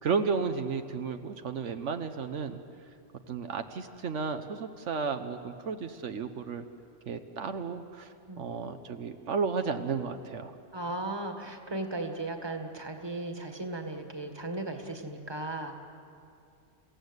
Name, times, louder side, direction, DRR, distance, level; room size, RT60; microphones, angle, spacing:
voice 1, 0.0-2.6 3.3-6.6 7.1-8.1 8.4-10.5, right 5 dB, 75° right, 7 dB, 1.2 m, -33 dB
voice 2, 10.7-15.8, right 2 dB, 20° right, 5 dB, 1.7 m, -36 dB
29.0 x 16.5 x 8.1 m, 2.5 s
omnidirectional pair, 1.3 m